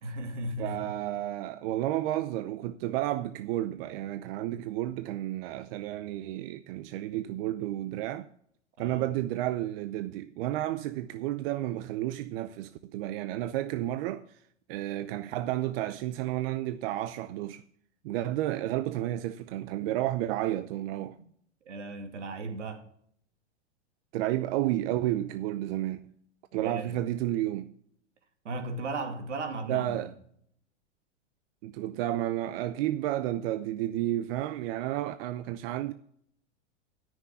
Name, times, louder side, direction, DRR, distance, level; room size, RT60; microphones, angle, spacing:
voice 1, 0.0-1.0 8.8-9.1 20.9-21.3 21.6-22.9 26.5-27.1 28.4-30.1, right 2 dB, 85° right, 2.4 m, -36 dB
voice 2, 0.6-8.3 8.8-14.2 14.7-17.6 18.0-21.2 24.1-26.1 26.5-27.7 29.7-30.1 31.6-35.9, right 14 dB, 55° right, 0.8 m, -31 dB
13.5 x 6.4 x 7.1 m
hypercardioid pair, 110°, 35 cm